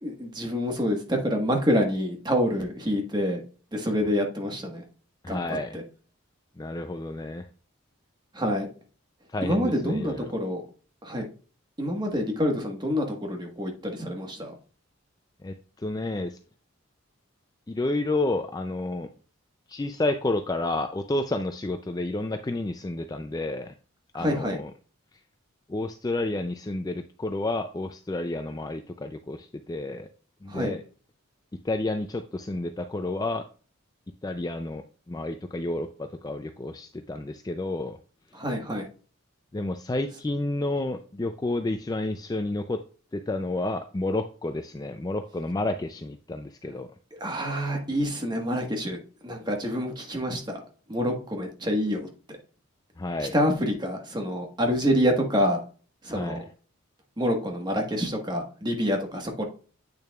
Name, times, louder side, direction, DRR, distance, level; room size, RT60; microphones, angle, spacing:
voice 1, 0.0-3.4 3.7-4.8 5.3-5.8 8.3-8.7 9.4-10.7 11.0-11.3 11.8-14.5 24.2-24.6 30.5-30.7 38.3-38.9 47.2-49.0 49.2-50.6 50.9-52.1 53.3-55.6 56.0-56.4 57.2-59.4, equal, 20° right, 2 dB, 1.3 m, -27 dB
voice 2, 5.2-5.8 6.6-7.5 9.3-10.3 15.4-16.4 17.7-19.1 19.7-23.7 24.1-24.7 25.7-30.1 30.4-30.8 31.6-33.4 34.2-34.8 35.1-38.0 39.5-42.8 43.1-46.9 53.0-53.3 56.1-56.5, left 2 dB, 20° left, 7 dB, 0.3 m, -30 dB
8.4 x 6.6 x 2.3 m, 0.38 s
head